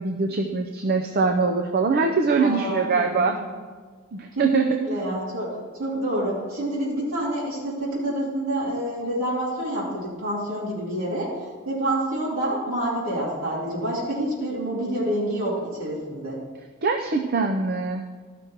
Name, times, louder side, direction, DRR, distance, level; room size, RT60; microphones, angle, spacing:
voice 1, 0.0-3.4 4.1-4.7 16.8-18.0, right 4 dB, 45° right, 4 dB, 0.5 m, -23 dB
voice 2, 2.4-2.9 3.1-3.6 4.3-5.5 5.8-16.4, right 1 dB, 70° right, -7 dB, 2.9 m, -27 dB
13.0 x 6.1 x 4.5 m, 1.5 s
head